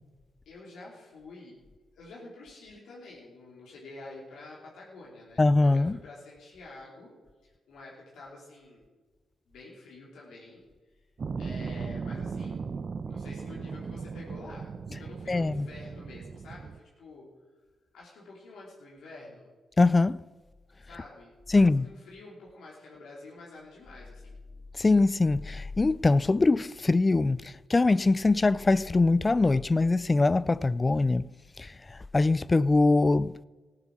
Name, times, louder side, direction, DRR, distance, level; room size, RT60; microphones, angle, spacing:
voice 1, 0.4-1.5 1.9-7.1 7.7-8.9 9.5-10.6 11.4-12.8 13.1-17.3 17.9-19.5 20.8-24.4, left 2 dB, 80° left, 3.3 m, -48 dB
voice 2, 5.4-6.0 15.3-15.7 19.8-20.2 21.5-21.9 24.8-31.2 31.6-31.7 32.1-33.4, left 3 dB, 25° left, 0.3 m, -23 dB
sound 1, 11.2-16.8, right 5 dB, 50° right, 0.6 m, -37 dB
15.0 x 8.8 x 6.1 m
cardioid pair, 70°, 0 cm